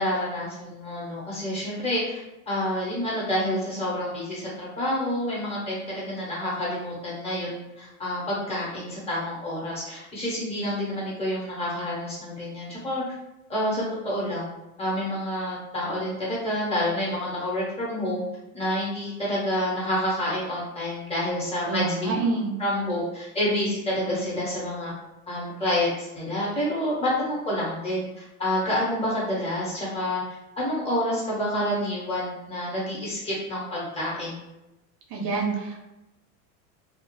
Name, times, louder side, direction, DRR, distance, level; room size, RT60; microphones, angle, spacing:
voice 1, 0.0-13.0 13.5-14.5 14.8-18.2 18.5-22.1 22.6-24.9 25.3-30.2 30.6-34.4, left 1 dB, 15° left, -6 dB, 1.0 m, -28 dB
voice 2, 21.7-22.5 35.1-35.8, right 3 dB, 55° right, -1 dB, 0.8 m, -27 dB
2.3 x 2.0 x 3.0 m, 0.95 s
supercardioid pair, 125°, 43 cm